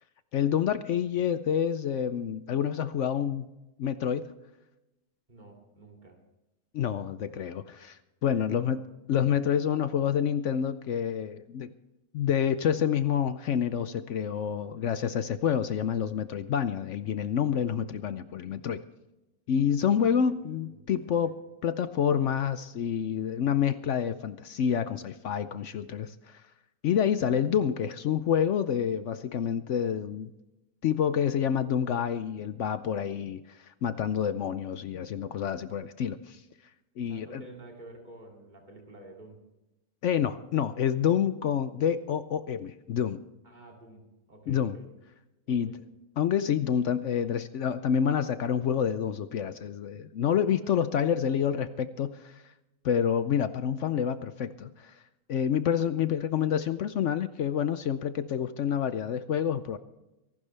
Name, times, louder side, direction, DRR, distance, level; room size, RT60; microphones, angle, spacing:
voice 1, 0.3-3.5 3.8-4.3 6.7-8.8 9.1-11.7 12.1-18.8 19.5-21.3 21.6-26.4 26.8-30.3 30.8-36.4 37.0-37.4 40.0-43.2 44.5-44.8 45.5-45.8 46.2-52.4 52.8-55.0 55.3-59.8, left 8 dB, 65° left, 12 dB, 0.8 m, -28 dB
voice 2, 5.3-6.2 8.3-8.8 20.0-20.2 20.7-21.2 37.1-39.4 43.4-44.0 44.3-44.9 45.5-45.8 50.6-50.7, right 2 dB, 30° right, 0 dB, 2.8 m, -50 dB
24.5 x 12.0 x 3.3 m, 0.98 s
omnidirectional pair, 1.6 m